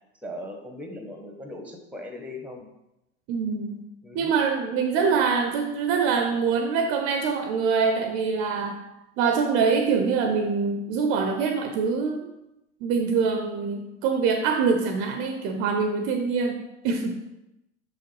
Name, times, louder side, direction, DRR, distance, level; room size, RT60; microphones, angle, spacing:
voice 1, 0.2-2.7 4.0-4.3, left 1 dB, 5° right, 4 dB, 1.0 m, -39 dB
voice 2, 3.3-3.8 4.1-8.8 9.2-12.3 12.8-17.2, right 5 dB, 40° right, 6 dB, 0.7 m, -24 dB
6.2 x 5.6 x 3.2 m, 0.90 s
figure-of-eight pair, 80°, 34 cm